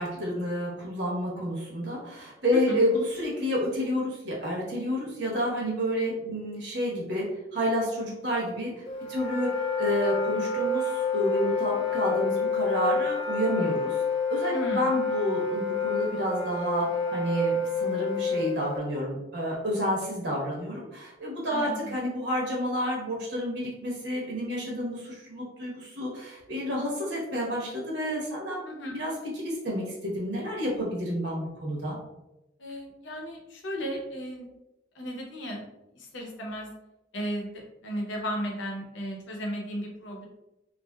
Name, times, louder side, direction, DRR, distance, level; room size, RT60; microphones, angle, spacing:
voice 1, 0.0-7.2 7.5-8.8 9.1-14.0 14.3-28.6 28.9-32.0, equal, 65° right, -3 dB, 1.0 m, -30 dB
Wind instrument woodwind instrument, 8.9-18.8, left 4 dB, 30° left, 0.4 m, -28 dB
voice 2, 14.5-14.9 21.5-22.0 28.6-29.0 32.6-34.5 34.9-35.6 35.9-36.7 37.1-40.3, equal, 75° left, 0 dB, 0.7 m, -35 dB
3.2 x 2.5 x 2.2 m, 0.94 s
head